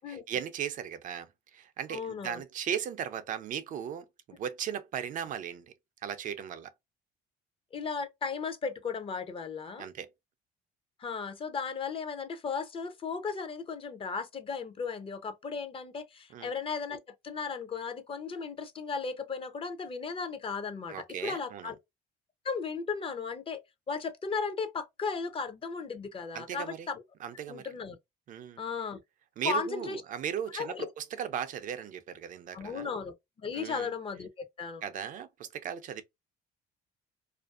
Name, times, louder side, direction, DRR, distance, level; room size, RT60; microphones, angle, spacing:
voice 1, 0.1-5.7 6.0-6.7 9.8-10.1 16.3-16.5 20.9-21.7 26.3-26.9 27.2-27.7 28.3-28.6 29.4-32.9 33.5-33.9 34.8-36.0, right 9 dB, 50° right, 0.4 m, -37 dB
voice 2, 1.9-2.4 7.7-9.9 11.0-17.0 17.2-21.7 22.4-23.6 23.9-27.0 27.5-28.0 28.6-29.0 29.4-30.0 30.5-30.9 32.5-34.8, left 5 dB, 35° left, 0.5 m, -36 dB
2.5 x 2.3 x 2.3 m
cardioid pair, 110°, 17 cm